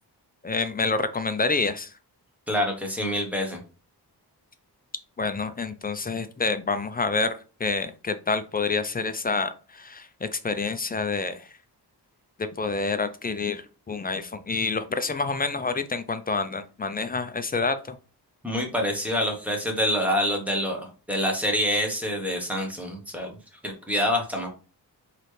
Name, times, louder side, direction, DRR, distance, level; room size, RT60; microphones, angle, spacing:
voice 1, 0.4-1.9 5.2-11.5 12.6-18.0, left 4 dB, 25° left, 10 dB, 0.3 m, -28 dB
voice 2, 2.5-3.6 18.4-23.4 23.6-24.5, equal, 5° right, 1 dB, 1.0 m, -26 dB
4.1 x 3.2 x 3.2 m, 0.34 s
wide cardioid pair, 160°, 41 cm